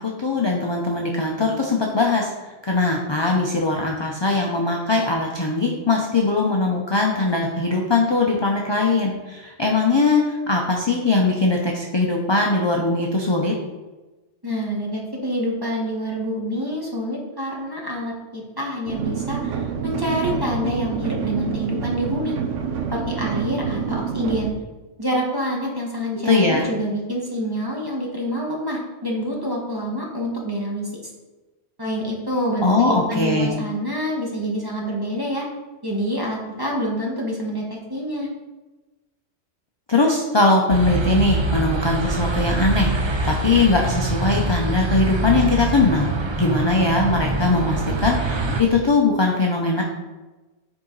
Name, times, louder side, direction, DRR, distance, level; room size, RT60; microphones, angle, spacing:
voice 1, 0.0-2.3 2.7-13.5 26.2-26.7 32.6-33.5 39.9-46.1 46.4-49.8, left 3 dB, 30° left, -1 dB, 0.5 m, -20 dB
voice 2, 14.4-22.4 22.8-24.5 25.0-30.9 31.8-35.4 35.8-38.3, equal, 20° right, -3 dB, 1.3 m, -27 dB
sound 1, 18.9-24.5, right 7 dB, 90° right, 1.1 m, -27 dB
sound 2, 40.7-48.6, right 2 dB, 40° right, 0.4 m, -24 dB
6.8 x 4.9 x 3.9 m, 1.2 s
omnidirectional pair, 1.3 m